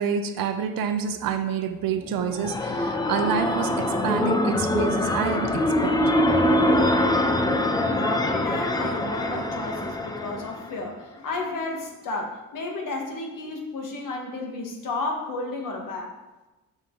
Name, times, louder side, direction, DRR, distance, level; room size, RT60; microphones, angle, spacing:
voice 1, 0.0-6.0, right 7 dB, 80° right, 8 dB, 0.8 m, -28 dB
sound 1, 2.0-10.9, left 1 dB, 10° left, 0.4 m, -24 dB
voice 2, 7.4-16.1, left 2 dB, 65° left, 1 dB, 1.5 m, -32 dB
7.2 x 6.3 x 3.8 m, 1.1 s
cardioid pair, 145°, 34 cm